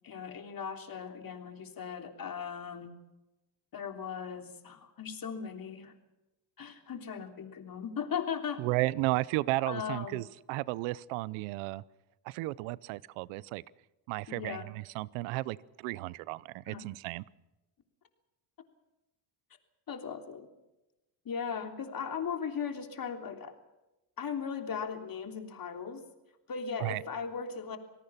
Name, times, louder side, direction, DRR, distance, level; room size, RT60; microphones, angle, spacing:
voice 1, 0.0-2.9 3.7-5.9 6.6-8.6 9.7-10.2 14.3-14.7 16.7-16.9 19.9-20.5 21.2-23.5 24.2-26.1 26.5-27.8, left 6 dB, 45° left, 5 dB, 3.4 m, -38 dB
voice 2, 8.6-11.8 12.3-13.6 14.1-17.2 26.8-27.0, right 20 dB, 85° right, 21 dB, 0.8 m, -33 dB
27.0 x 18.0 x 5.8 m, 1.0 s
supercardioid pair, 85°, 49 cm